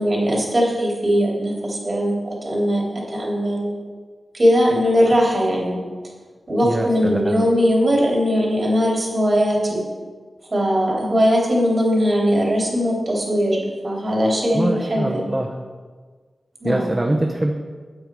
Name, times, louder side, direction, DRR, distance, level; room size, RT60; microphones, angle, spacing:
voice 1, 0.0-3.7 4.3-5.7 6.5-9.8 10.5-15.2 16.6-16.9, equal, 45° right, -3 dB, 3.3 m, -20 dB
voice 2, 6.6-7.5 14.5-15.5 16.6-17.5, right 1 dB, 25° right, 2 dB, 0.7 m, -23 dB
8.7 x 8.5 x 4.6 m, 1.5 s
wide cardioid pair, 95°, 0 cm